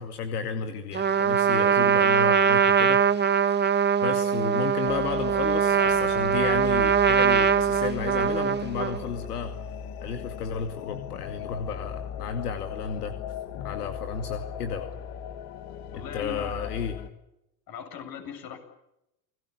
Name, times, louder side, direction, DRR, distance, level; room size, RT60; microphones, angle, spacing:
voice 1, 0.0-3.0 4.0-9.5 10.0-13.2 13.6-14.9 15.9-17.0, left 6 dB, 90° left, 7 dB, 2.4 m, -33 dB
Trumpet, 0.9-9.1, right 7 dB, 20° right, 1.8 m, -22 dB
sound 1, 4.9-17.1, left 8 dB, 70° left, 2.7 m, -38 dB
voice 2, 15.9-17.0 17.7-18.6, left 7 dB, 50° left, 6 dB, 7.9 m, -39 dB
29.5 x 20.0 x 8.5 m, 0.86 s
hypercardioid pair, 85°, 45 cm